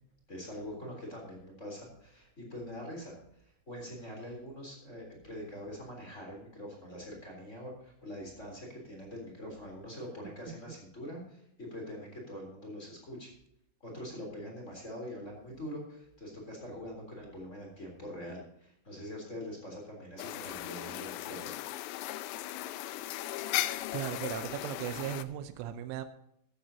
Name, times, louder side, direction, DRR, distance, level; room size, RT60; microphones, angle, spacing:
voice 1, 0.3-13.3 13.8-21.6, equal, 15° left, 3.3 m, -44 dB
sound 1, 20.2-25.2, left 14 dB, 90° left, 2.4 m, -37 dB
voice 2, 23.9-26.1, right 11 dB, 85° right, 3.3 m, -37 dB
14.5 x 13.5 x 2.9 m
omnidirectional pair, 5.6 m